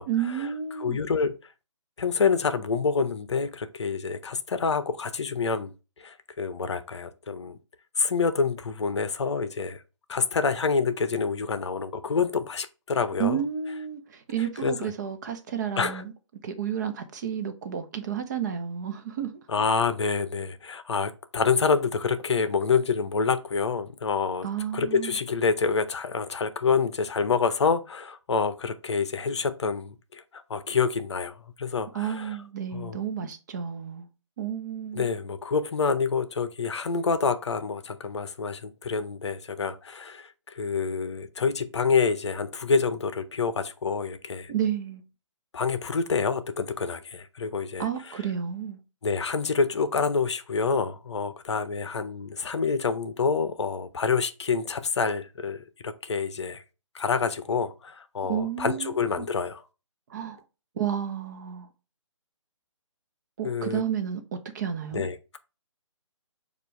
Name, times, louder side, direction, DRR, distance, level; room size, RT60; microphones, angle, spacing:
voice 1, 0.1-1.0 13.2-16.1 16.4-19.4 24.4-25.2 31.9-34.1 34.4-35.0 44.5-45.0 47.8-48.8 58.2-59.3 60.1-60.4 60.8-61.7 63.4-65.0, right 9 dB, 35° right, 0.8 m, -31 dB
voice 2, 0.8-1.3 2.0-5.7 6.0-7.6 8.0-9.8 10.1-13.4 14.6-14.9 15.8-16.0 19.5-24.5 24.7-32.3 32.7-33.0 34.9-40.3 40.5-44.5 45.5-47.9 49.0-55.6 55.8-56.6 56.9-59.6 63.4-63.8 64.9-65.4, left 5 dB, 60° left, 0.7 m, -27 dB
6.7 x 2.5 x 3.1 m
figure-of-eight pair, 140°, 16 cm